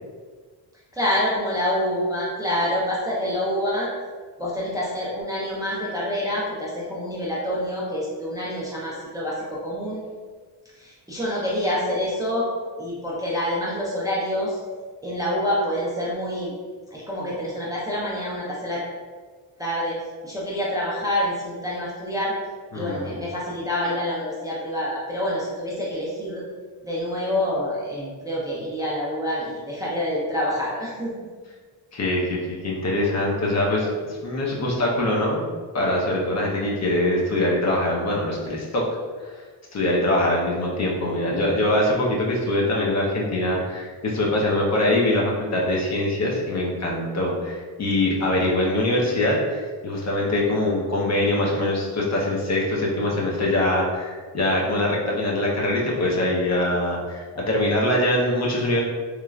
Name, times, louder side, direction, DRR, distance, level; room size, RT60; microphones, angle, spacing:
voice 1, 0.9-3.9 4.4-10.0 10.8-12.5 12.8-14.6 15.0-16.5 16.9-18.8 19.6-20.0 20.2-22.3 22.7-26.4 26.9-31.1, left 1 dB, 10° right, -6 dB, 0.4 m, -27 dB
voice 2, 22.7-23.2 31.9-33.9 34.2-35.5 35.7-38.8 39.2-39.3 39.7-58.8, left 1 dB, 40° left, -3 dB, 0.6 m, -23 dB
3.1 x 2.2 x 2.3 m, 1.5 s
cardioid pair, 110°, 42 cm